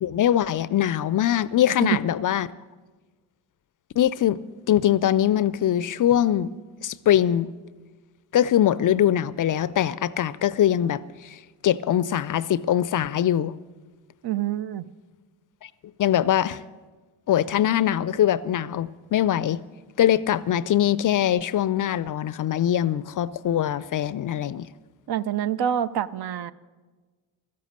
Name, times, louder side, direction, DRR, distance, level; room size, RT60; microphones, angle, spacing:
voice 1, 0.0-2.5 4.0-4.4 4.7-6.5 6.8-7.5 8.3-13.5 15.6-15.7 16.0-16.6 17.3-19.6 20.0-24.7, left 11 dB, 45° left, 0.5 m, -22 dB
voice 2, 14.2-14.9 25.1-26.5, right 10 dB, 55° right, 0.6 m, -26 dB
12.5 x 11.5 x 6.5 m
hypercardioid pair, 45°, 48 cm